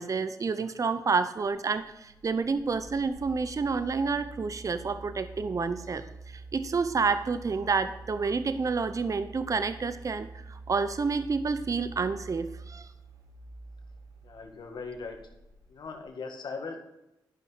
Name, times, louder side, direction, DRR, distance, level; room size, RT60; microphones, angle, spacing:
voice 1, 0.0-12.9, right 4 dB, 45° right, 12 dB, 0.7 m, -29 dB
sound 1, 1.4-16.0, right 3 dB, 85° right, 1.4 m, -47 dB
voice 2, 14.2-15.2 15.7-16.9, left 4 dB, 70° left, 4 dB, 1.9 m, -39 dB
12.0 x 5.4 x 5.7 m, 0.91 s
cardioid pair, 60°, 8 cm